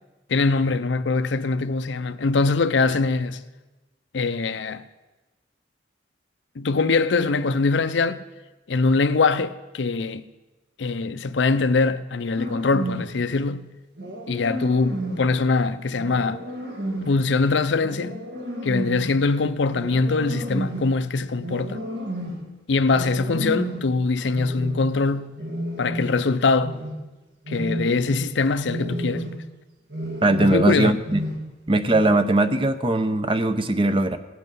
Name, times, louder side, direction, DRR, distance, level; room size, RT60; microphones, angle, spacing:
voice 1, 0.3-3.4 4.1-4.8 6.6-8.2 8.7-10.2 10.8-13.7 14.3-16.4 17.1-18.2 18.6-21.8 22.7-25.4 25.8-26.8 27.5-29.3 30.4-31.0, left 3 dB, 75° left, 0.6 m, -22 dB
sound 1, 12.4-13.2 14.0-15.3 16.0-17.2 17.8-19.2 19.7-21.0 21.4-22.5 22.9-23.9 24.3-24.9 25.4-26.3 26.6-27.1 27.4-28.2 28.6-29.5 29.9-30.7 31.0-31.6 31.9-32.0, right 1 dB, 70° right, 1.9 m, -32 dB
voice 2, 30.2-31.2 31.7-34.2, right 2 dB, 30° right, 0.7 m, -20 dB
17.5 x 7.8 x 5.5 m
head